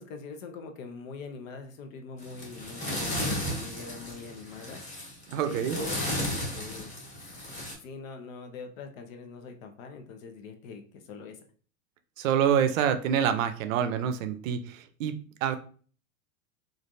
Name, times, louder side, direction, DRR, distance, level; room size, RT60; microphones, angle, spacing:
voice 1, 0.0-4.8 5.4-6.9 7.8-11.4, left 4 dB, 70° left, 5 dB, 0.8 m, -43 dB
sound 1, 2.2-7.7, left 1 dB, 15° left, 1.4 m, -34 dB
voice 2, 5.3-5.8 12.2-15.1 15.4-15.5, right 8 dB, 70° right, 10 dB, 0.6 m, -26 dB
3.2 x 2.5 x 2.6 m, 0.42 s
hypercardioid pair, 115°, 41 cm